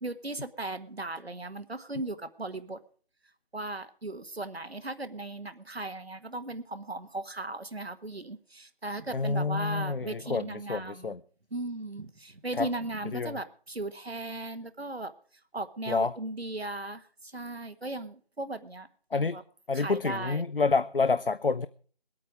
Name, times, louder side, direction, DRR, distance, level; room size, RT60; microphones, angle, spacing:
voice 1, 0.0-2.8 3.5-11.1 11.5-15.1 15.5-19.4 19.7-20.4, right 2 dB, 90° right, 12 dB, 1.3 m, -37 dB
voice 2, 9.1-11.2 12.6-12.7 13.1-13.4 15.9-16.1 19.1-19.4 19.7-21.7, left 4 dB, 65° left, 15 dB, 0.6 m, -28 dB
21.0 x 8.6 x 4.8 m, 0.43 s
figure-of-eight pair, 175°, 30 cm